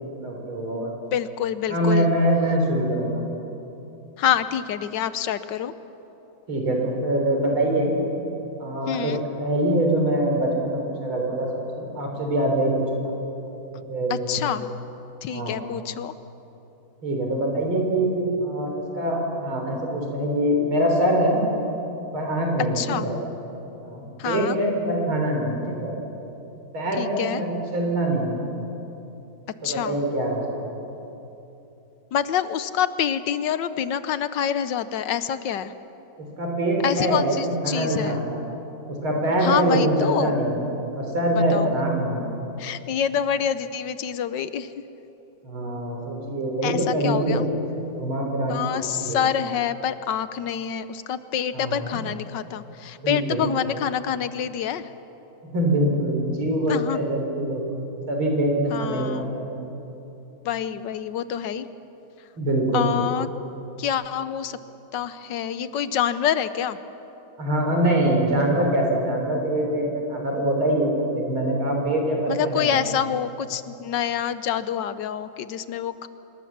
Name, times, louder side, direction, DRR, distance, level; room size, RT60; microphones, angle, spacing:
voice 1, 0.2-0.9 1.7-3.2 6.5-7.9 8.6-11.5 11.8-13.1 13.7-14.4 15.3-15.6 17.0-21.4 22.1-23.1 23.8-25.9 26.7-28.4 29.6-30.8 36.4-38.4 38.9-40.6 41.0-42.3 45.4-47.5 48.0-49.2 51.5-52.0 53.0-53.4 55.5-57.6 58.1-59.5 62.4-62.9 67.4-72.7, right 1 dB, 90° right, 1 dB, 4.6 m, -24 dB
voice 2, 1.1-2.1 4.2-5.7 8.9-9.2 14.1-14.7 15.2-16.1 22.8-23.1 24.2-24.6 27.0-27.4 29.6-30.0 32.1-35.7 36.8-38.2 39.4-40.4 41.3-41.7 42.6-44.7 46.6-47.5 48.5-54.9 56.7-57.0 58.7-59.3 60.4-61.7 62.7-63.3 63.8-64.6 64.9-66.8 72.3-76.1, left 9 dB, 65° left, 13 dB, 1.3 m, -27 dB
26.0 x 21.0 x 7.3 m, 3.0 s
omnidirectional pair, 2.2 m